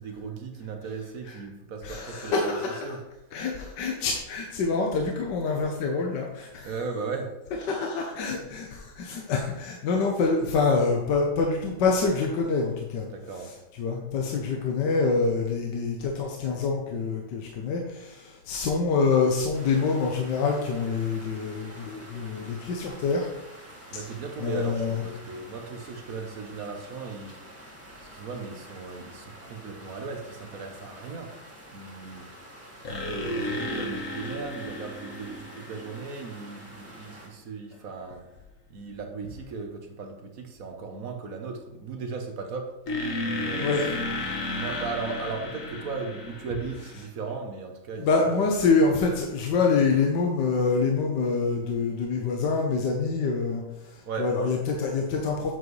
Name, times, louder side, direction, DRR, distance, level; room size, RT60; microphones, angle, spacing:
voice 1, 0.0-2.6 2.8-3.0 6.6-7.4 13.0-13.6 23.9-27.4 28.0-31.3 31.7-38.3 38.7-42.7 43.3-43.9 44.6-48.4 54.1-54.3, right 4 dB, 55° right, 4 dB, 1.3 m, -37 dB
voice 2, 0.8-1.4 1.8-3.0 3.3-6.8 7.7-23.3 24.0-25.0 43.6-43.9 46.7-47.0 47.9-55.5, left 4 dB, 75° left, 1 dB, 1.5 m, -26 dB
sound 1, 19.5-37.3, right 1 dB, 10° right, 1.7 m, -48 dB
sound 2, 32.8-36.5 42.9-47.1, left 2 dB, 50° left, 1.4 m, -33 dB
7.9 x 7.3 x 3.2 m, 0.93 s
omnidirectional pair, 1.9 m